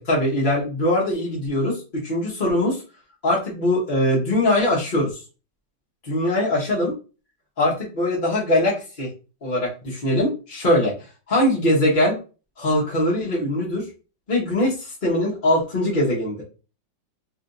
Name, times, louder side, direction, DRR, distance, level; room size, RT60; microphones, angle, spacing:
voice 1, 0.0-1.8 2.0-2.8 3.2-5.2 6.0-6.9 7.6-9.1 9.4-10.9 11.3-12.1 12.6-13.9 14.3-16.4, left 1 dB, 35° left, -5 dB, 0.8 m, -21 dB
3.3 x 2.9 x 2.5 m, 0.34 s
omnidirectional pair, 2.1 m